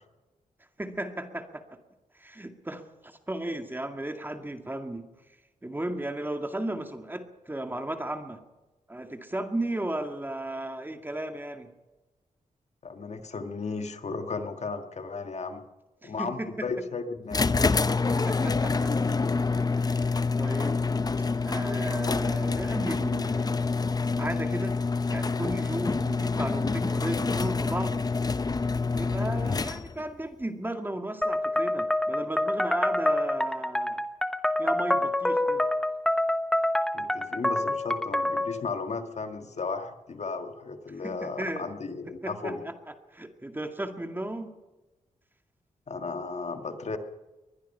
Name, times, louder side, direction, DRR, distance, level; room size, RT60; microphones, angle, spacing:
voice 1, 0.8-1.8 2.1-5.1 5.6-8.4 8.9-11.7 16.0-16.7 18.1-18.9 19.8-20.9 21.5-23.6 24.2-24.8 25.1-28.0 28.9-34.0 34.6-35.7 41.0-41.7 42.2-42.7 43.1-44.5, right 1 dB, 15° right, 6 dB, 2.0 m, -35 dB
voice 2, 12.8-15.6 16.0-17.6 36.9-42.6 45.9-47.0, left 4 dB, 55° left, 7 dB, 1.9 m, -35 dB
sound 1, 17.3-30.1, left 4 dB, 30° left, 0.7 m, -27 dB
sound 2, 31.2-38.6, left 1 dB, 5° left, 1.2 m, -27 dB
23.0 x 21.0 x 5.7 m, 1.1 s
wide cardioid pair, 110°, 14 cm